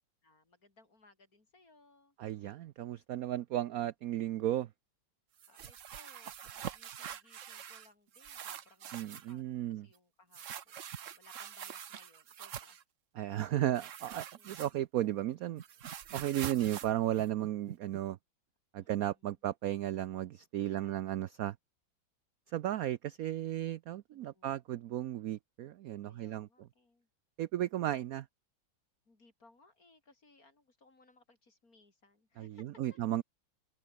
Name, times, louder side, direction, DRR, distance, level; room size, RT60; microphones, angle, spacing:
voice 1, 0.2-2.2 5.5-12.8 14.3-14.8 18.8-19.4 20.7-21.2 24.1-24.6 26.1-27.1 29.0-33.0, left 3 dB, 45° left, 4.8 m, -65 dB
voice 2, 2.2-4.7 8.9-9.9 13.2-15.6 16.1-18.2 18.7-21.5 22.5-26.5 27.4-28.3 32.4-33.2, right 13 dB, 75° right, 0.8 m, -34 dB
sound 1, 5.4-7.9 8.1-9.3 10.3-12.8 13.7-15.1 15.3-18.0, right 9 dB, 50° right, 1.0 m, -45 dB
omnidirectional pair, 2.1 m